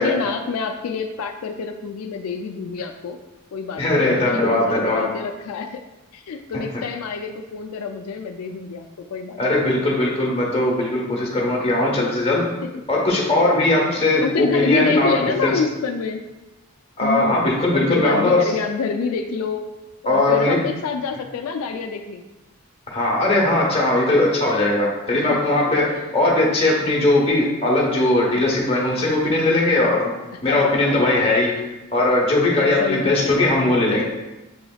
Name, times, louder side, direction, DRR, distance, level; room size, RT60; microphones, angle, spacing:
voice 1, 0.0-3.2 3.5-5.8 6.1-9.6 11.2-11.4 12.6-12.7 13.4-16.2 17.0-19.7 20.0-22.3 25.1-25.4 26.0-26.1 26.6-26.8 30.5-31.0 32.6-33.5, left 5 dB, 90° left, 5 dB, 0.4 m, -27 dB
voice 2, 3.8-5.0 9.4-12.4 12.9-15.6 17.0-18.4 20.1-20.6 22.9-30.1 30.4-31.5 31.9-34.0, left 2 dB, 25° left, -3 dB, 0.9 m, -19 dB
6.9 x 3.3 x 2.3 m, 1.0 s
head